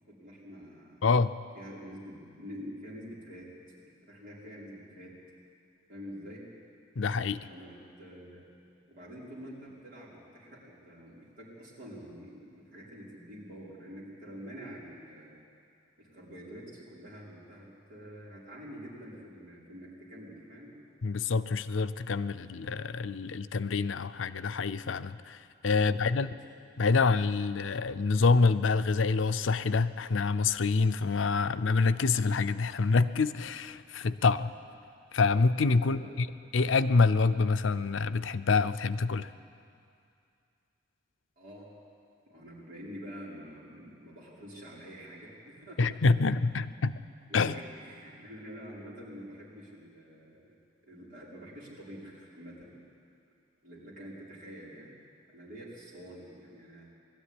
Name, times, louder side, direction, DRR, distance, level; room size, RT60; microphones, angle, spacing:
voice 1, 0.0-1.1 1.6-3.5 3.8-5.1 5.9-6.4 7.5-8.4 8.9-15.3 16.0-20.7 25.7-26.2 35.8-36.1 41.4-41.7 42.3-46.0 47.3-50.6 50.8-52.8 53.6-55.0 55.3-56.9, equal, 50° right, -7 dB, 5.6 m, -47 dB
voice 2, 1.0-1.3 7.0-7.5 21.0-26.3 26.8-34.5 35.1-36.3 36.5-39.3 45.8-47.0 47.3-47.6, left 4 dB, 85° left, 13 dB, 0.6 m, -26 dB
20.0 x 13.0 x 10.0 m, 2.4 s
head